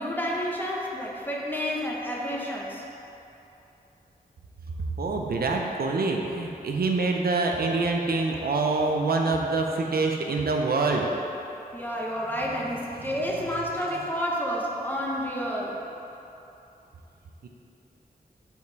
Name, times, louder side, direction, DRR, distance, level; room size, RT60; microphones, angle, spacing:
voice 1, 0.0-2.8 11.7-15.9, equal, 10° left, -3 dB, 0.9 m, -30 dB
voice 2, 5.0-11.1 13.0-13.2 17.4-17.5, right 3 dB, 75° right, 1 dB, 0.6 m, -26 dB
5.3 x 4.7 x 4.6 m, 2.9 s
wide cardioid pair, 100°, 16 cm